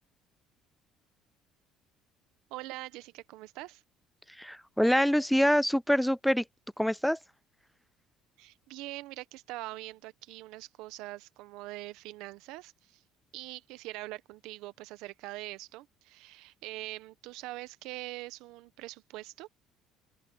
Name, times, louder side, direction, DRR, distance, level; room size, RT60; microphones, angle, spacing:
voice 1, 2.5-3.8 8.4-13.0 13.3-19.5, right 18 dB, 80° right, 1.0 m, -43 dB
voice 2, 4.4-6.4 6.8-7.2, equal, ahead, 0.3 m, -25 dB
open air
cardioid pair, 135°, 0 cm